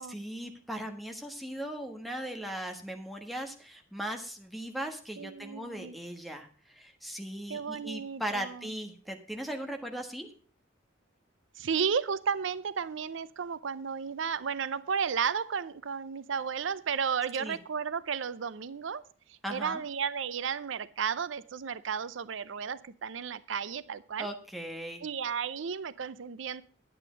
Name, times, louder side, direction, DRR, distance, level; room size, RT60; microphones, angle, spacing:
voice 1, 0.0-10.3 17.4-17.6 19.4-19.8 24.2-25.0, right 1 dB, ahead, 4 dB, 1.4 m, -38 dB
voice 2, 5.2-5.9 7.5-8.6 11.6-19.0 19.3-24.3 25.0-26.6, right 6 dB, 70° right, 16 dB, 0.5 m, -33 dB
10.0 x 8.8 x 5.0 m, 0.42 s
head